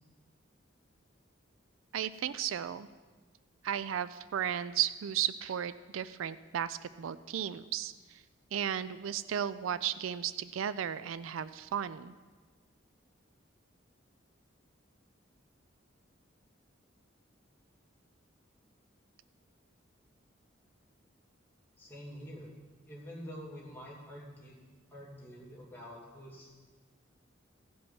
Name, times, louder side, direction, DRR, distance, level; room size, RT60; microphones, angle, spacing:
voice 1, 1.9-2.9 3.6-8.2 8.5-12.1, right 9 dB, 85° right, 15 dB, 0.4 m, -34 dB
voice 2, 21.8-22.5 22.9-24.5 24.9-26.5, equal, 10° left, -5 dB, 2.6 m, -47 dB
15.5 x 5.3 x 5.9 m, 1.4 s
head